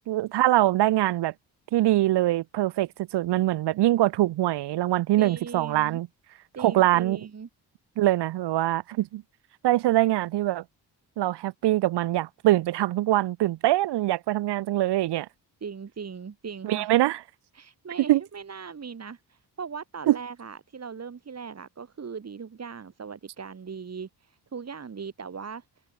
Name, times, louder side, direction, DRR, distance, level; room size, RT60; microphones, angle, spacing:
voice 1, 0.1-1.3 1.7-6.1 6.6-7.2 8.0-9.2 9.6-10.6 11.2-15.3 16.6-17.2 18.1-18.2 20.1-20.2, right 15 dB, 80° right, 0.6 m, -23 dB
voice 2, 5.2-6.0 6.5-7.5 15.6-16.9 17.5-25.6, right 6 dB, 40° right, 4.1 m, -39 dB
wide cardioid pair, 140°, 40 cm